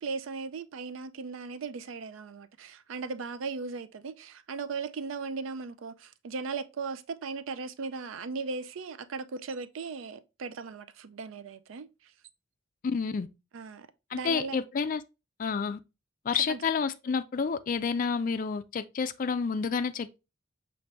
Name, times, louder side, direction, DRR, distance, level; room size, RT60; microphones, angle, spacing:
voice 1, 0.0-12.1 13.5-14.6 16.5-16.6, right 4 dB, 90° right, 0.4 m, -37 dB
voice 2, 12.8-13.3 14.1-15.0 15.4-15.8 16.2-20.2, left 5 dB, 45° left, 0.3 m, -29 dB
5.8 x 2.5 x 3.1 m
head